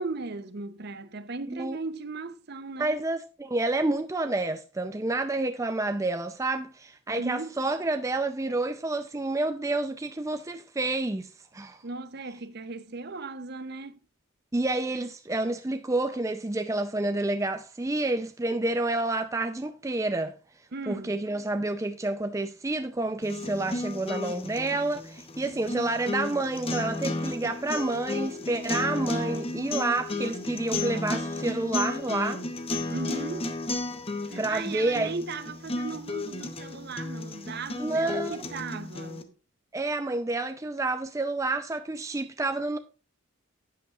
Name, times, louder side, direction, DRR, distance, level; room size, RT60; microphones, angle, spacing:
voice 1, 0.0-3.0 7.1-7.6 11.8-14.0 20.7-21.2 32.9-33.5 34.2-39.3, right 3 dB, 50° right, 0.7 m, -37 dB
voice 2, 2.8-11.3 11.5-11.8 14.5-20.3 20.9-32.4 34.4-35.1 37.8-38.5 39.7-42.8, right 2 dB, 15° right, 0.4 m, -29 dB
sound 1, 23.2-39.2, left 2 dB, 25° left, 0.8 m, -33 dB
12.5 x 8.5 x 2.4 m
head